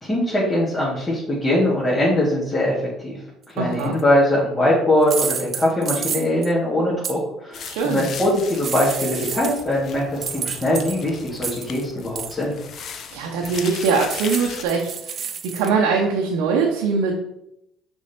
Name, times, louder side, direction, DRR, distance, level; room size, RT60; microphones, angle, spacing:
voice 1, 0.0-3.2 3.5-12.5, left 1 dB, 25° left, -7 dB, 2.2 m, -21 dB
voice 2, 3.6-3.9 7.6-8.0 13.1-17.2, right 5 dB, 75° right, -1 dB, 0.8 m, -22 dB
sound 1, 3.8-4.0 5.0-6.5 7.0-7.1 8.3-9.7 10.2-11.8 12.2-12.4 13.4-15.7, right 7 dB, 45° right, 0.6 m, -30 dB
sound 2, 7.5-14.6, left 6 dB, 50° left, 0.7 m, -37 dB
6.1 x 3.6 x 4.4 m, 0.81 s
hypercardioid pair, 65°, 0 cm